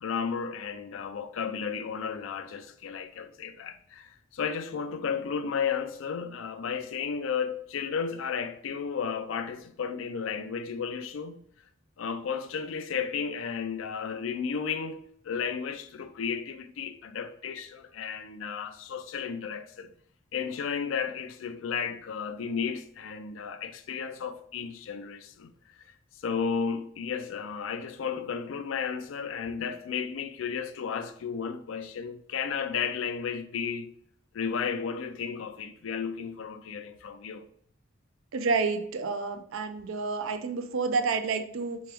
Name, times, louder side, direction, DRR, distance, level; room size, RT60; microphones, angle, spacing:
voice 1, 0.0-11.4 12.0-19.9 20.3-25.9 26.2-33.9 34.3-37.4, left 6 dB, 75° left, 0.4 m, -33 dB
voice 2, 38.3-41.8, right 4 dB, 85° right, 0.5 m, -29 dB
3.3 x 3.1 x 3.3 m
head